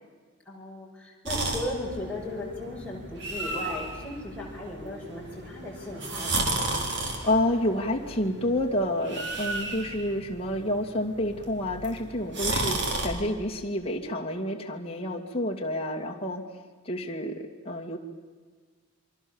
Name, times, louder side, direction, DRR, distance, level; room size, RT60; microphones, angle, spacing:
voice 1, 0.5-6.5, left 1 dB, 5° left, -4 dB, 6.0 m, -37 dB
sound 1, 1.2-13.1, right 2 dB, 55° right, 4.1 m, -33 dB
voice 2, 6.8-16.4 16.8-17.4 17.6-18.0, left 1 dB, 25° left, 1 dB, 2.5 m, -29 dB
28.0 x 24.0 x 7.3 m, 1.5 s
head